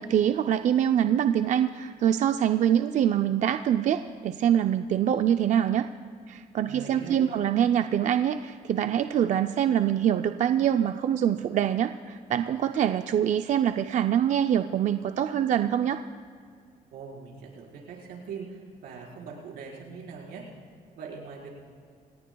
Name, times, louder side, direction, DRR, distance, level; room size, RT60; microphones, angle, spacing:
voice 1, 0.0-5.9 6.3-16.0, right 10 dB, 50° right, 8 dB, 0.5 m, -24 dB
voice 2, 6.6-7.4 16.9-20.4 20.9-21.5, right 5 dB, 90° right, -2 dB, 4.6 m, -41 dB
27.5 x 19.0 x 2.3 m, 2.1 s
cardioid pair, 120°, 15 cm